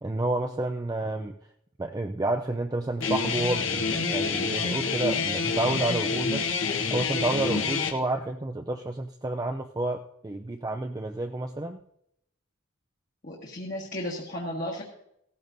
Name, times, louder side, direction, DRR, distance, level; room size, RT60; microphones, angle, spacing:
voice 1, 0.0-1.4 1.8-6.5 6.9-11.8, right 2 dB, 20° right, 4 dB, 0.4 m, -30 dB
Guitar, 3.0-7.9, left 4 dB, 70° left, 1.2 m, -27 dB
voice 2, 13.2-14.8, left 1 dB, 45° left, -3 dB, 1.6 m, -34 dB
16.5 x 14.0 x 2.7 m, 0.77 s
head